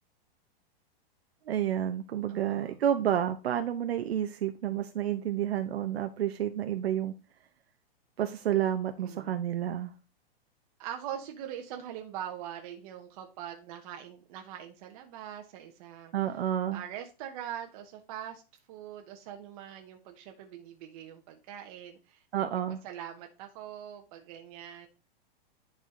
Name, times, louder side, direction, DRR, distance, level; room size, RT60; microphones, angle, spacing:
voice 1, 1.5-7.1 8.2-9.9 16.1-16.8 22.3-22.8, right 10 dB, 90° right, 7 dB, 0.9 m, -30 dB
voice 2, 2.3-2.8 9.0-9.4 10.8-16.1 16.7-18.4 18.7-22.2 22.8-24.9, right 10 dB, 35° right, 3 dB, 1.1 m, -42 dB
10.5 x 4.9 x 3.7 m, 0.31 s
hypercardioid pair, 160°, 30 cm